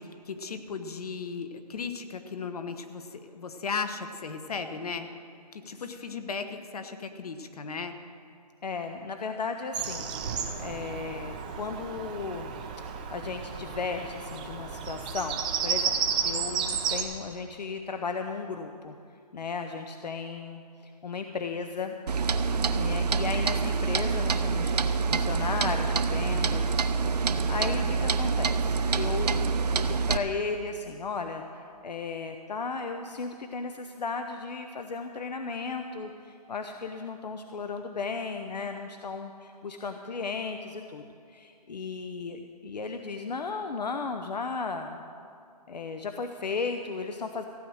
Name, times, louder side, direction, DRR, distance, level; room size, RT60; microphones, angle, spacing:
voice 1, 0.0-5.1 5.5-7.9, left 5 dB, 65° left, 8 dB, 1.3 m, -36 dB
voice 2, 8.6-12.5 13.1-15.9 16.2-19.0 19.3-21.9 22.7-26.7 27.1-41.0 41.3-45.0 45.7-47.5, left 4 dB, 80° left, 6 dB, 0.8 m, -35 dB
Bird vocalization bird call bird song, 9.7-17.0, right 7 dB, 10° right, 0.4 m, -32 dB
Clock, 22.1-30.2, right 5 dB, 75° right, 0.7 m, -26 dB
15.5 x 8.7 x 6.3 m, 2.4 s
hypercardioid pair, 165°, 21 cm